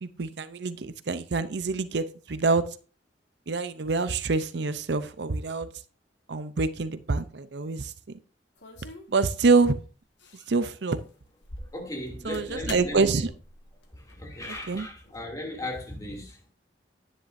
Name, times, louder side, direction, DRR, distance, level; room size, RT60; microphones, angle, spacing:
voice 1, 0.0-2.7 3.5-5.7 6.3-7.9 9.1-9.8 10.5-11.0 12.2-13.3 14.7-14.9, right 4 dB, 70° right, 0.6 m, -26 dB
sound 1, 8.6-9.6 10.2-10.6 11.0-15.2, left 2 dB, 80° left, 1.7 m, -45 dB
voice 2, 11.6-13.3 13.9-16.5, left 1 dB, 20° left, 2.7 m, -37 dB
10.5 x 9.7 x 2.6 m
head